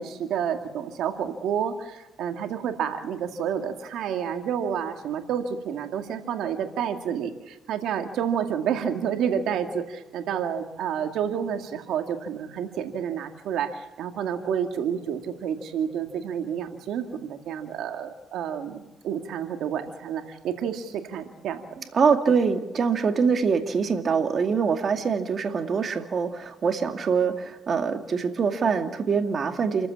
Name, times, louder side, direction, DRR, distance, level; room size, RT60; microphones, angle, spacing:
voice 1, 0.0-21.8, right 8 dB, 80° right, 6 dB, 2.2 m, -29 dB
voice 2, 21.9-29.9, right 5 dB, 50° right, 6 dB, 2.3 m, -24 dB
29.0 x 14.5 x 8.7 m, 1.0 s
cardioid pair, 90°, 0 cm